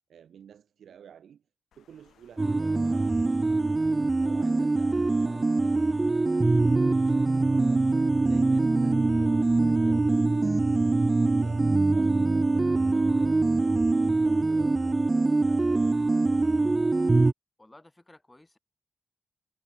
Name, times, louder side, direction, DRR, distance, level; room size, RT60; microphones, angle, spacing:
voice 1, 0.1-1.5 1.7-6.8 7.1-16.4, right 8 dB, 80° right, 6.5 m, -53 dB
Water, 1.7-7.9, left 9 dB, 85° left, 6.6 m, -63 dB
sound 1, 2.4-17.3, right 3 dB, 30° right, 0.4 m, -23 dB
voice 2, 17.6-18.6, left 1 dB, 15° left, 6.8 m, -54 dB
cardioid pair, 70°, 0 cm